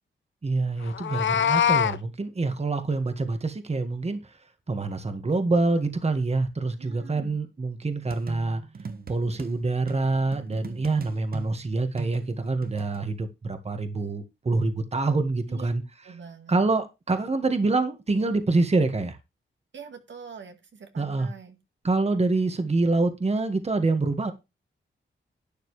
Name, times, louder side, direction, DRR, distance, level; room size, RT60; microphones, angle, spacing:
voice 1, 0.4-4.2 4.7-8.6 9.1-15.8 16.5-19.2 21.0-21.3 21.8-24.3, right 3 dB, 30° right, 1.7 m, -26 dB
Meow, 0.9-2.0, left 9 dB, 70° left, 0.7 m, -23 dB
voice 2, 6.7-7.4 15.5-15.7 16.0-16.6 19.7-21.6, right 6 dB, 70° right, 1.9 m, -44 dB
sound 1, 8.1-9.5 9.9-13.0, right 5 dB, 50° right, 1.3 m, -39 dB
12.0 x 9.3 x 3.3 m
wide cardioid pair, 100°, 20 cm